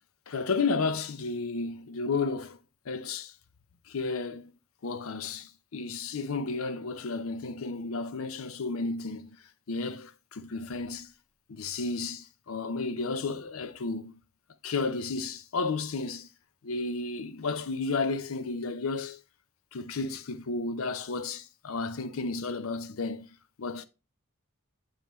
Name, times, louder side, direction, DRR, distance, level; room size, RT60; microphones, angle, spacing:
voice 1, 0.3-2.6 2.9-3.3 3.9-4.5 4.8-9.4 9.7-11.1 11.5-14.2 14.6-16.3 16.6-19.2 19.7-23.3 23.6-23.9, left 4 dB, 75° left, 0.6 m, -32 dB
7.3 x 5.3 x 3.0 m
head